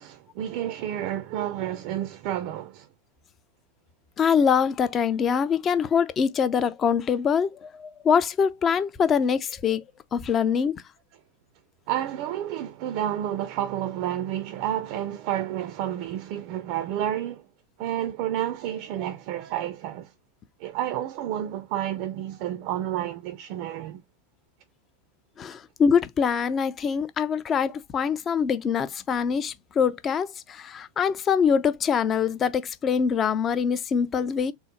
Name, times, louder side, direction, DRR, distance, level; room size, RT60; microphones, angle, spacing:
voice 1, 0.0-2.9 11.9-17.5 17.8-20.1 20.6-24.0, right 11 dB, 45° right, 0.4 m, -30 dB
voice 2, 4.2-9.8 10.1-10.8 25.4-34.5, left 7 dB, 25° left, 0.4 m, -24 dB
3.8 x 2.0 x 4.1 m
figure-of-eight pair, 90°, 0 cm